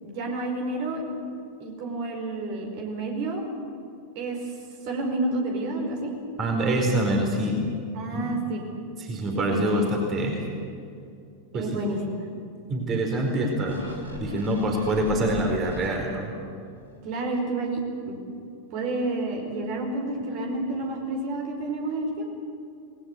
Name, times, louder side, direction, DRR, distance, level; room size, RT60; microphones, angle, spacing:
voice 1, 0.0-1.0 1.6-3.5 4.1-4.4 4.8-6.1 7.9-8.6 9.3-9.8 11.5-12.2 17.0-18.2 18.7-22.3, right 2 dB, 45° right, 2 dB, 4.8 m, -30 dB
voice 2, 6.4-7.6 8.1-8.5 9.0-10.4 11.5-11.9 12.7-16.3, right 1 dB, 30° right, 2 dB, 4.5 m, -26 dB
sound 1, 13.7-16.4 16.9-17.0, equal, 90° right, 4.2 m, -38 dB
26.5 x 20.5 x 8.2 m, 2.5 s
figure-of-eight pair, 90°, 0 cm